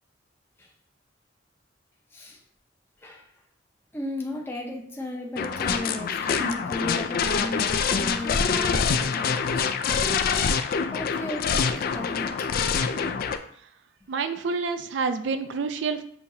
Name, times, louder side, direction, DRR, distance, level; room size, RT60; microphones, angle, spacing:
voice 1, 3.9-9.6 9.8-10.0 10.9-11.7 11.9-12.3 12.8-13.0, left 1 dB, 10° left, -1 dB, 0.6 m, -35 dB
sound 1, 5.4-13.4, left 6 dB, 50° left, 0.3 m, -25 dB
voice 2, 14.1-16.0, right 4 dB, 70° right, 9 dB, 0.4 m, -28 dB
6.8 x 2.8 x 2.7 m, 0.64 s
head